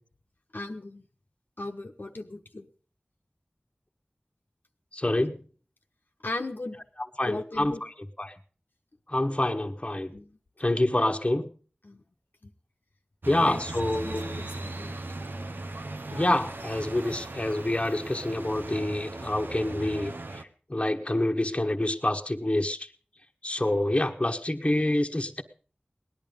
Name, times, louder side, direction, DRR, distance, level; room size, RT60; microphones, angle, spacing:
voice 1, 0.5-1.1 1.6-2.7 6.2-6.8 7.2-7.8 10.1-10.4 10.6-10.8 11.8-12.0 12.4-12.5 13.4-13.6 14.0-14.9, left 2 dB, 70° left, 3 dB, 1.2 m, -37 dB
voice 2, 4.9-5.4 7.2-7.7 8.2-8.3 9.1-10.1 10.6-11.5 13.2-14.2 16.1-20.1 20.7-22.8 23.4-25.4, left 1 dB, 35° left, 5 dB, 1.3 m, -27 dB
sound 1, 13.2-20.4, right 2 dB, 80° right, 1.0 m, -38 dB
18.5 x 11.0 x 5.3 m, 0.41 s
wide cardioid pair, 45°, 3 cm